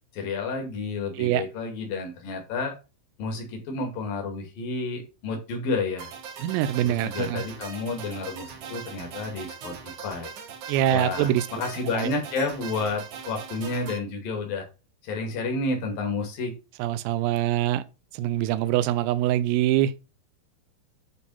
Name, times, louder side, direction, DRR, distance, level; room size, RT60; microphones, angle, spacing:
voice 1, 0.1-2.7 3.2-6.1 6.8-10.3 10.9-14.6 15.0-16.5, left 3 dB, 55° left, 3.2 m, -30 dB
sound 1, 6.0-14.0, right 6 dB, 70° right, 1.8 m, -40 dB
voice 2, 6.4-7.4 10.7-11.5 11.9-12.1 16.8-17.8 18.1-19.9, right 12 dB, 90° right, 3.3 m, -24 dB
11.0 x 4.1 x 5.5 m
omnidirectional pair, 5.8 m